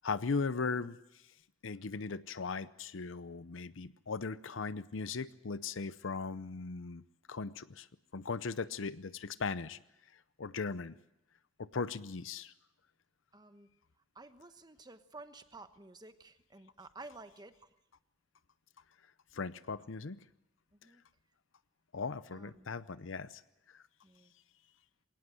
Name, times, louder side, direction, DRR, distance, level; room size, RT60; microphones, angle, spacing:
voice 1, 0.0-1.0 1.6-7.0 7.3-7.9 8.1-9.8 10.4-11.0 11.6-12.5 19.3-20.2 21.9-23.4 23.7-23.8, left 4 dB, 70° left, 15 dB, 0.7 m, -38 dB
voice 2, 13.3-13.7 14.1-17.7 20.7-21.0 22.3-22.8 24.0-24.3, right 3 dB, 20° right, 10 dB, 1.1 m, -53 dB
21.5 x 18.0 x 7.7 m, 0.87 s
head